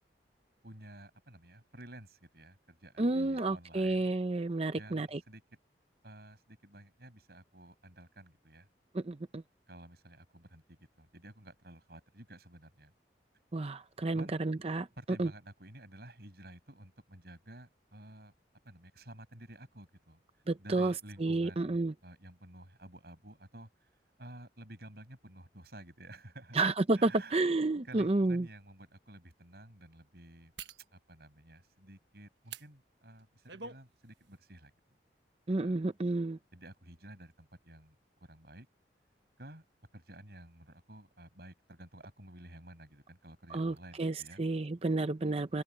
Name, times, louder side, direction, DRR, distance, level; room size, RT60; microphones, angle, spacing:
voice 1, 0.6-4.1 4.7-5.4 6.0-8.7 9.7-12.9 14.1-14.4 15.0-18.3 18.6-20.2 20.6-23.9 24.2-26.6 26.9-27.4 27.8-30.5 30.9-34.7 35.6-35.8 36.5-38.0 38.2-38.7 39.4-39.6 39.9-44.4, right 1 dB, 60° right, 7.6 m, -52 dB
voice 2, 3.0-5.2 8.9-9.4 13.5-14.9 15.2-15.3 20.5-20.9 21.2-21.9 26.5-28.5 35.5-36.4 43.5-45.6, right 2 dB, 35° right, 0.6 m, -31 dB
sound 1, 27.7-27.8 28.5-28.6 30.6-30.8 32.4-32.7 33.2-33.8 34.2-34.4, right 5 dB, 80° right, 1.4 m, -46 dB
open air
head